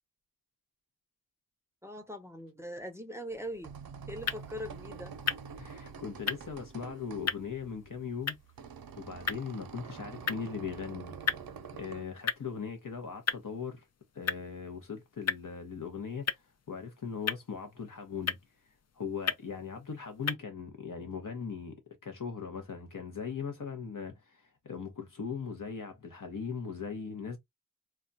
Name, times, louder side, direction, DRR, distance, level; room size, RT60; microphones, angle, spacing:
voice 1, 1.8-3.7 4.1-5.1, equal, 10° right, 0.6 m, -41 dB
sound 1, 3.3-12.0, right 6 dB, 85° right, 0.6 m, -46 dB
sound 2, 4.1-20.4, left 7 dB, 50° left, 0.4 m, -39 dB
voice 2, 5.6-8.4 9.0-11.1 11.7-13.9 14.1-16.4 16.7-18.4 18.9-27.4, left 6 dB, 65° left, 0.8 m, -39 dB
2.3 x 2.1 x 3.9 m
wide cardioid pair, 80°, 35 cm